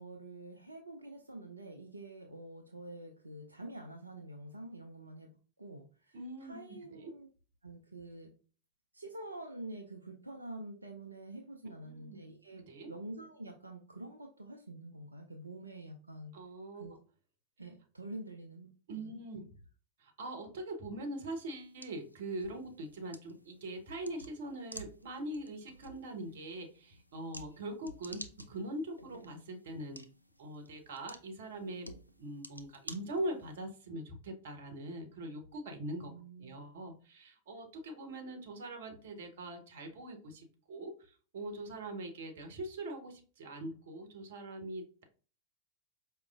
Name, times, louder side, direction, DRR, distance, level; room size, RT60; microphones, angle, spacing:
voice 1, 0.0-5.3 5.6-7.3 7.6-8.3 8.9-16.4 16.8-17.0 17.6-18.7 18.9-19.2 36.0-36.6, right 1 dB, 80° right, 2 dB, 0.4 m, -47 dB
voice 2, 6.1-7.1 11.8-12.2 12.6-12.9 16.3-16.8 18.9-19.5 20.0-28.2 28.5-30.0 30.4-31.9 32.2-36.1 36.4-45.0, right 1 dB, 60° right, 6 dB, 0.8 m, -42 dB
sound 1, 21.3-33.6, equal, 90° left, 0.4 m, -53 dB
4.8 x 2.9 x 2.3 m, 0.39 s
figure-of-eight pair, 90°, 0 cm